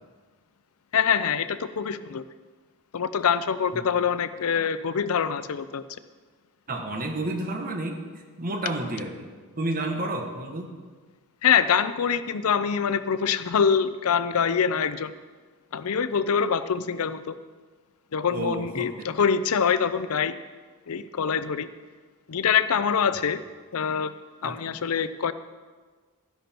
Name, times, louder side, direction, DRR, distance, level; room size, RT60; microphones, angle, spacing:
voice 1, 0.9-2.2 2.9-5.8 11.4-15.1 15.7-17.3 18.1-20.4 20.9-21.7 22.3-23.4 23.7-24.1 24.4-25.3, left 7 dB, 70° left, 14 dB, 0.5 m, -24 dB
voice 2, 6.7-8.0 8.4-9.3 9.6-10.7 18.3-19.1 24.4-24.5, right 1 dB, 40° right, 4 dB, 1.3 m, -30 dB
13.0 x 10.5 x 4.4 m, 1.4 s
head